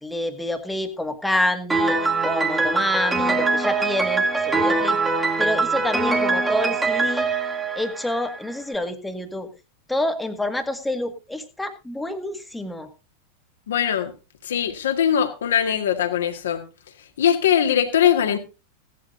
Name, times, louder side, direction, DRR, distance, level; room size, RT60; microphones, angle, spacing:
voice 1, 0.0-2.0 2.2-5.0 5.4-7.3 7.8-9.5 9.9-12.9, left 1 dB, 5° left, 7 dB, 1.8 m, -27 dB
Piano, 1.7-8.5, right 3 dB, 10° right, 2.1 m, -22 dB
voice 2, 13.7-14.1 14.4-16.6 17.2-18.4, left 9 dB, 65° left, 5 dB, 2.0 m, -21 dB
17.0 x 12.0 x 2.7 m, 0.28 s
figure-of-eight pair, 90°, 0 cm